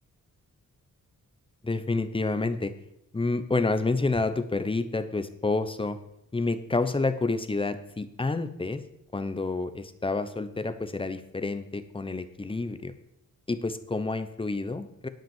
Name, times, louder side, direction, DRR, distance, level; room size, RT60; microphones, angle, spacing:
voice 1, 1.6-2.7 3.1-6.0 6.3-8.8 9.1-12.9 13.5-15.1, left 3 dB, 15° left, 11 dB, 0.8 m, -29 dB
10.5 x 6.1 x 7.3 m, 0.78 s
wide cardioid pair, 115°, 32 cm